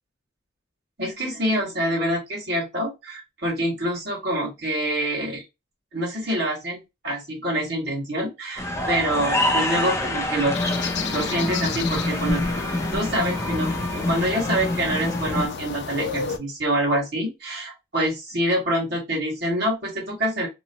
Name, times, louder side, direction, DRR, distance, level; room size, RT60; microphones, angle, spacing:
voice 1, 1.0-5.4 5.9-6.8 7.0-10.5 11.1-12.4 12.9-20.5, right 1 dB, 60° right, -2 dB, 1.6 m, -26 dB
sound 1, 8.6-15.5, left 1 dB, 15° left, 0.5 m, -26 dB
sound 2, 10.5-16.4, left 5 dB, 70° left, 0.4 m, -33 dB
2.9 x 2.1 x 2.7 m, 0.22 s
head